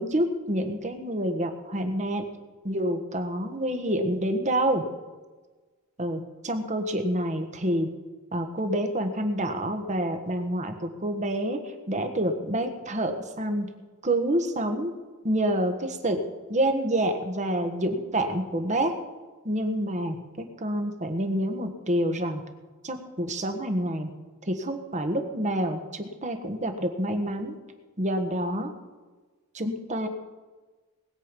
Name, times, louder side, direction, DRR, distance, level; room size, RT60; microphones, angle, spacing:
voice 1, 0.0-2.2 2.6-4.8 6.0-7.9 8.3-11.6 11.9-13.7 14.0-14.9 15.2-16.2 16.5-18.9 19.4-22.4 22.8-24.1 24.5-27.6 28.0-28.7 29.5-30.1, right 1 dB, 35° right, 6 dB, 1.4 m, -27 dB
20.5 x 7.8 x 5.4 m, 1.3 s
head